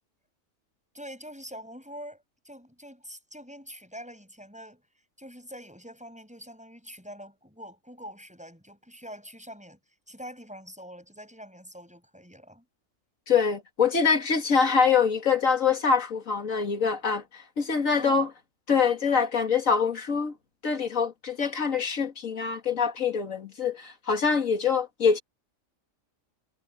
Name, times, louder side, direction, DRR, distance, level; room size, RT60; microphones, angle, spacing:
voice 1, 0.9-4.8 5.2-9.8 10.1-12.7 18.0-18.3, equal, 5° right, 7.0 m, -44 dB
voice 2, 13.3-18.3 18.7-20.3 20.6-25.2, left 5 dB, 90° left, 2.4 m, -24 dB
omnidirectional pair, 1.3 m